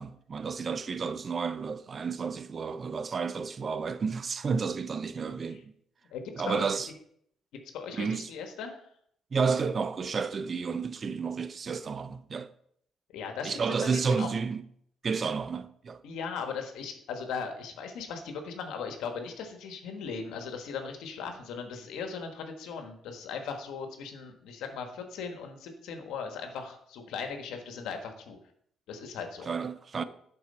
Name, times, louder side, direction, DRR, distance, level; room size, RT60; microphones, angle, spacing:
voice 1, 0.0-5.6 6.4-6.9 8.0-8.3 9.3-12.5 13.4-14.6 15.0-16.0 29.5-30.0, right 5 dB, 40° right, 0.5 m, -31 dB
voice 2, 6.1-6.8 7.7-8.9 13.1-14.3 16.0-28.4 28.9-29.5, left 6 dB, 85° left, 1.3 m, -38 dB
11.0 x 4.4 x 4.3 m
cardioid pair, 90°, 0 cm